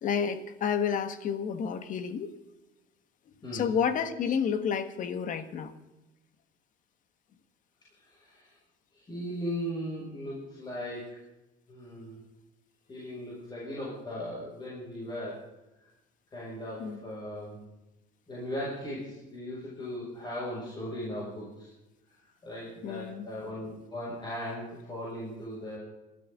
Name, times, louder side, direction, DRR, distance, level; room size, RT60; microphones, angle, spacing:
voice 1, 0.0-2.3 3.5-5.7 16.8-17.0 22.8-23.3, left 7 dB, 45° left, 10 dB, 1.6 m, -30 dB
voice 2, 3.4-3.7 8.0-8.6 8.9-11.1 11.7-12.2 12.9-15.4 16.3-17.6 18.3-21.7 22.1-25.8, equal, 25° left, -6 dB, 6.2 m, -38 dB
28.0 x 13.0 x 3.8 m, 1.0 s
cardioid pair, 150°, 19 cm